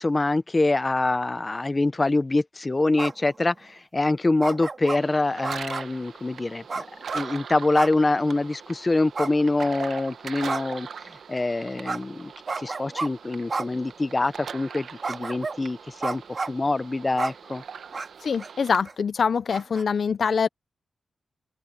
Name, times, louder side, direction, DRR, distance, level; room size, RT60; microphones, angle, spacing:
voice 1, 0.0-6.9 7.1-12.3 12.6-17.6, left 2 dB, 20° left, 0.7 m, -25 dB
sound 1, 3.0-3.3 4.4-5.0 5.4-6.0 6.7-7.3 7.7-8.0 8.3-8.4 9.1-9.9 10.5-10.8 11.9-12.0 12.5-13.1 13.5-13.7 14.2-14.3 15.0-15.6 16.0-16.6 17.2-17.3 17.9-18.1 18.4-18.5 18.8-18.9 19.5-19.8, right 4 dB, 40° right, 2.3 m, -31 dB
sound 2, 5.0-18.8, right 6 dB, 70° right, 1.0 m, -41 dB
voice 2, 18.2-20.5, left 6 dB, 55° left, 0.4 m, -24 dB
open air
wide cardioid pair, 155°, 0 cm